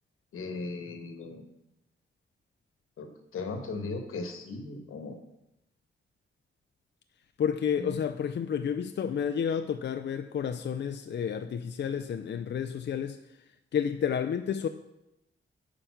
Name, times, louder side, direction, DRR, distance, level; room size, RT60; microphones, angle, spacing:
voice 1, 0.3-1.5 3.0-5.2 7.7-8.0, left 3 dB, 90° left, 1.3 m, -37 dB
voice 2, 7.4-13.2 13.7-14.7, left 7 dB, 55° left, 0.5 m, -30 dB
9.1 x 5.2 x 5.8 m
cardioid pair, 95°, 21 cm